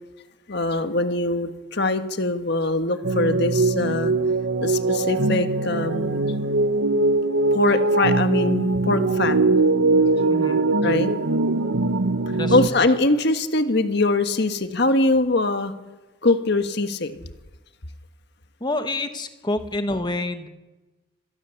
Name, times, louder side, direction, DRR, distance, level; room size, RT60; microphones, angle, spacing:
voice 1, 0.5-4.1 4.6-6.2 7.5-9.4 10.2-11.1 12.5-15.7 16.2-17.2, left 2 dB, 55° left, 9 dB, 1.5 m, -22 dB
sound 1, 3.0-12.7, right 3 dB, 85° right, 1.0 m, -21 dB
voice 2, 10.3-10.6 12.3-12.8 18.6-20.5, left 2 dB, 20° left, 8 dB, 1.7 m, -28 dB
26.5 x 19.0 x 7.1 m, 1.1 s
head